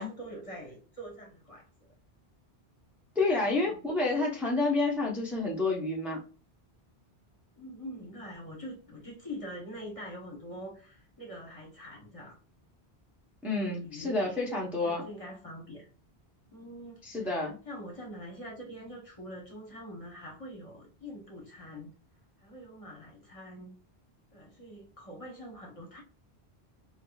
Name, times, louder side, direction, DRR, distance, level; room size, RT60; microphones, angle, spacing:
voice 1, 0.0-1.9 3.4-3.8 7.6-12.4 13.5-14.4 14.8-15.9 16.5-17.3 17.6-21.9 22.4-23.8 24.3-26.0, equal, 35° left, 1.0 m, -44 dB
voice 2, 3.2-6.2 13.4-15.1 17.0-17.6, left 3 dB, ahead, 0.7 m, -29 dB
4.9 x 2.3 x 2.3 m
omnidirectional pair, 1.1 m